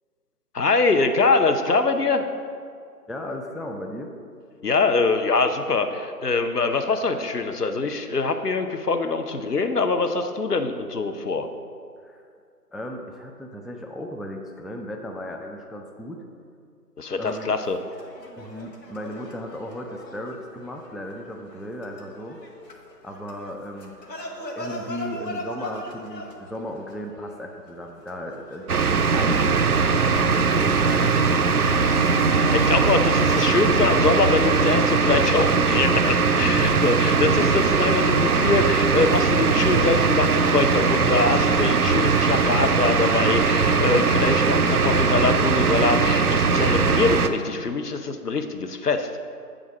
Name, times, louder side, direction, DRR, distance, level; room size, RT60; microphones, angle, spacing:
voice 1, 0.5-2.2 4.6-11.5 17.0-17.8 32.5-49.1, left 3 dB, 70° left, 7 dB, 0.8 m, -23 dB
voice 2, 3.1-4.1 12.0-12.3 12.7-16.2 17.2-17.5 18.4-22.4 23.0-23.9 24.6-31.4 36.5-37.0, equal, ahead, 2 dB, 0.4 m, -35 dB
sound 1, 17.2-29.6, left 1 dB, 85° left, 1.3 m, -40 dB
sound 2, 28.7-47.3, right 5 dB, 65° right, 0.5 m, -20 dB
Bowed string instrument, 31.5-36.7, right 1 dB, 45° left, 0.8 m, -32 dB
8.1 x 3.8 x 6.0 m, 2.2 s
figure-of-eight pair, 175°, 48 cm